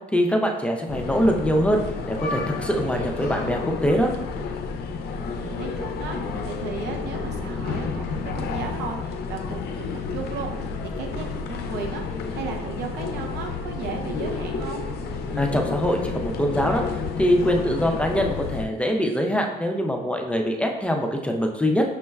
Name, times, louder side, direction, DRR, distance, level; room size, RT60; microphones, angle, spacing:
voice 1, 0.1-4.1 15.4-16.8 17.2-21.8, equal, 5° left, 2 dB, 0.4 m, -23 dB
sound 1, 0.9-18.7, left 4 dB, 70° left, 0.4 m, -30 dB
voice 2, 5.0-6.2 6.4-10.7 11.0-14.9, right 4 dB, 80° right, 2 dB, 0.7 m, -35 dB
6.1 x 2.1 x 2.3 m, 1.0 s
cardioid pair, 110°, 17 cm